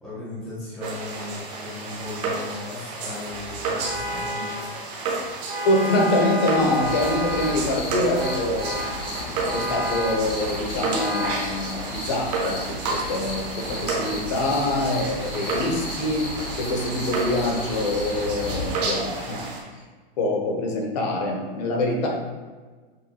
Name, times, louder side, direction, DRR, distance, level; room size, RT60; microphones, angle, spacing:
voice 1, 0.0-4.5, left 2 dB, ahead, -14 dB, 0.4 m, -36 dB
sound 1, 0.8-19.6, right 3 dB, 40° right, 0.8 m, -32 dB
Vehicle horn car horn honking, 3.8-4.7 5.5-7.6 8.2-9.0 9.4-10.3 10.9-11.5, right 1 dB, 75° right, 1.2 m, -30 dB
voice 2, 5.6-8.8 9.4-16.3 16.6-19.4 20.2-22.1, left 1 dB, 40° left, 0 dB, 0.8 m, -25 dB
sound 2, 6.8-18.8, left 1 dB, 65° left, 1.0 m, -34 dB
6.3 x 2.2 x 2.8 m, 1.4 s
supercardioid pair, 170°, 31 cm